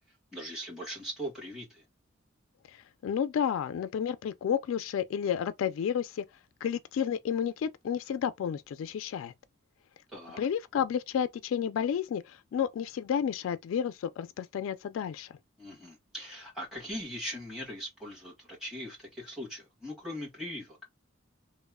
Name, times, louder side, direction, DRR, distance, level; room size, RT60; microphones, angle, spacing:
voice 1, 0.3-1.8 10.1-10.4 15.6-20.8, equal, 5° right, 1.5 m, -40 dB
voice 2, 3.0-6.2 6.6-9.3 10.4-15.3, left 8 dB, 90° left, 0.3 m, -31 dB
2.9 x 2.0 x 2.2 m
head